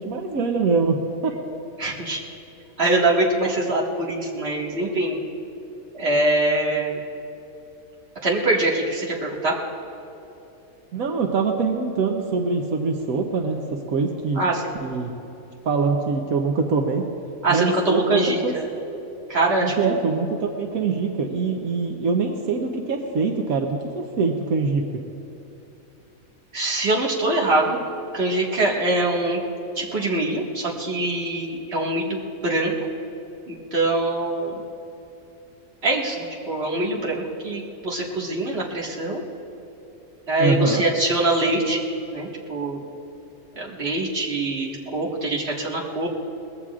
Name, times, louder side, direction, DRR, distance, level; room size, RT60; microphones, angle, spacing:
voice 1, 0.0-1.4 10.9-14.4 14.8-15.1 15.7-17.0 17.5-18.5 19.6-24.8 40.4-40.8, right 4 dB, 80° right, 2 dB, 1.3 m, -24 dB
voice 2, 1.8-2.2 2.8-5.2 5.9-7.0 8.2-9.6 14.3-14.8 17.4-18.7 19.3-20.0 26.5-27.8 28.1-29.4 29.8-32.7 33.5-34.6 35.8-39.2 40.3-41.8 42.1-42.8 43.5-46.1, right 2 dB, 45° right, -3 dB, 2.0 m, -23 dB
23.5 x 20.0 x 2.4 m, 2.9 s
omnidirectional pair, 1.5 m